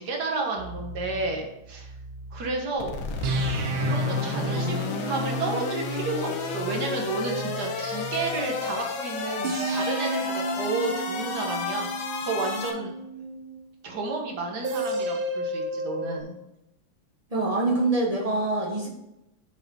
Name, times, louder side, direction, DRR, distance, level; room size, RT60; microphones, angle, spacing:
voice 1, 0.0-1.9 2.3-2.9 3.8-11.9 12.2-12.9 13.8-16.4, right 3 dB, 55° right, 1 dB, 1.8 m, -31 dB
sound 1, 0.6-2.6 3.2-8.4 9.4-13.7 14.6-16.2, right 1 dB, 75° right, 1.7 m, -32 dB
sound 2, 2.8-12.7, left 4 dB, 80° left, 1.8 m, -32 dB
voice 2, 17.3-18.9, right 2 dB, 20° right, -2 dB, 1.1 m, -25 dB
6.7 x 5.1 x 5.5 m, 0.88 s
omnidirectional pair, 2.2 m